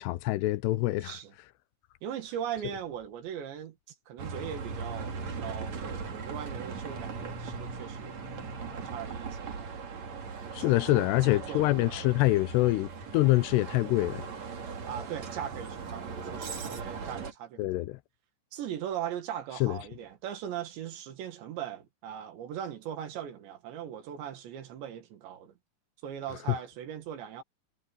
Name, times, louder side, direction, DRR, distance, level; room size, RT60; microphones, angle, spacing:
voice 1, 0.0-1.2 10.5-14.3 17.6-18.0 19.6-19.8, left 18 dB, 85° left, 2.7 m, -25 dB
voice 2, 1.0-1.3 2.0-3.8 4.1-8.2 8.7-9.7 10.6-12.1 14.9-17.7 18.5-25.5 26.0-27.4, right 9 dB, 90° right, 4.3 m, -39 dB
Bus, 4.2-17.3, right 5 dB, 45° right, 3.6 m, -39 dB
omnidirectional pair, 4.9 m